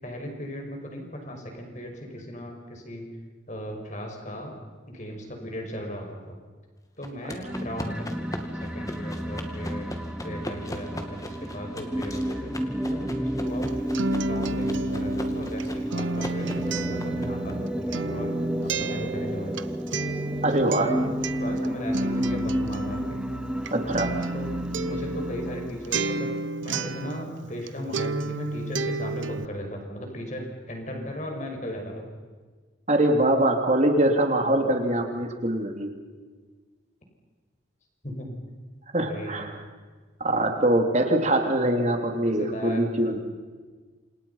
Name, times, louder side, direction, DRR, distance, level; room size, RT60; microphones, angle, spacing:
voice 1, 0.0-3.1 3.5-4.5 4.9-6.4 7.0-9.9 10.2-12.5 12.9-18.3 18.6-19.8 20.5-23.2 24.0-24.5 24.8-26.3 26.6-32.1 34.5-34.8 38.0-38.3 39.1-39.5 42.2-43.2, equal, 40° left, 2 dB, 6.0 m, -37 dB
sound 1, 7.0-17.5, left 1 dB, 15° left, 2.3 m, -40 dB
sound 2, 7.4-26.0, equal, 5° right, 0.9 m, -31 dB
Acoustic guitar, 13.5-27.7 27.9-29.5, right 3 dB, 75° right, 0.9 m, -32 dB
voice 2, 20.4-20.9 23.7-24.1 32.9-35.9 38.9-39.5 40.2-43.2, right 1 dB, 35° right, 4 dB, 3.2 m, -23 dB
28.5 x 27.0 x 5.8 m, 1.4 s
head